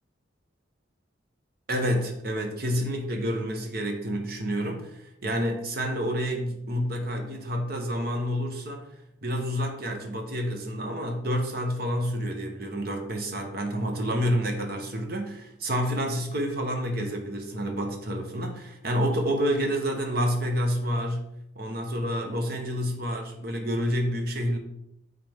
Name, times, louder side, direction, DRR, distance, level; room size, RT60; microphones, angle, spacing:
voice 1, 1.7-8.9 9.2-21.3 21.5-24.6, equal, 55° right, 3 dB, 1.1 m, -29 dB
9.1 x 3.8 x 3.6 m, 0.79 s
head